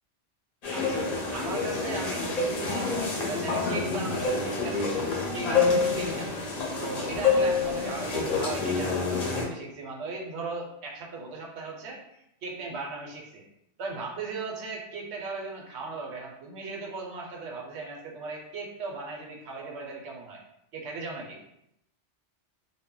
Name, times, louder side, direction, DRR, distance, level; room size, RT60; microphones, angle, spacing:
sound 1, 0.6-9.4, left 4 dB, 45° left, 0.6 m, -27 dB
voice 1, 0.7-4.9 5.3-6.3 6.8-13.4 13.8-20.4 20.7-21.4, right 3 dB, 80° right, -1 dB, 0.9 m, -37 dB
2.1 x 2.0 x 3.7 m, 0.81 s
omnidirectional pair, 1.1 m